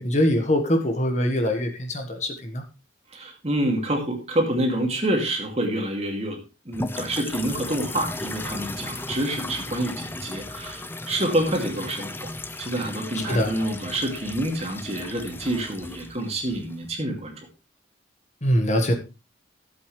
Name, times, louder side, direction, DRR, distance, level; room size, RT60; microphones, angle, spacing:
voice 1, 0.0-2.6 13.1-13.6 18.4-18.9, equal, 35° left, 4 dB, 1.5 m, -23 dB
voice 2, 3.1-12.3 12.6-17.3, right 1 dB, 35° right, 2 dB, 2.5 m, -27 dB
sound 1, 6.7-16.9, left 2 dB, 10° left, 0.6 m, -36 dB
14.0 x 8.0 x 3.3 m, 0.29 s
head